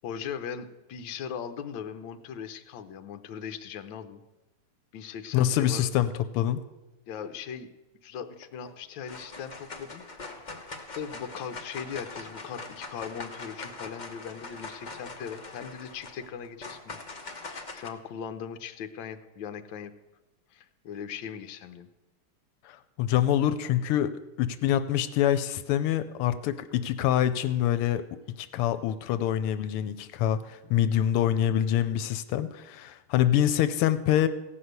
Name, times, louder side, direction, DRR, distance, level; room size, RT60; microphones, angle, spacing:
voice 1, 0.0-4.2 4.9-5.8 7.1-10.0 10.9-17.0 17.3-19.9 20.5-21.9 28.8-28.9, left 7 dB, 65° left, 8 dB, 1.4 m, -39 dB
voice 2, 5.3-6.6 22.6-28.0 28.4-34.3, left 11 dB, 90° left, 12 dB, 1.5 m, -25 dB
sound 1, 8.4-8.7 9.1-17.9, left 3 dB, 35° left, 0.7 m, -42 dB
16.0 x 5.8 x 8.0 m, 1.0 s
omnidirectional pair, 2.4 m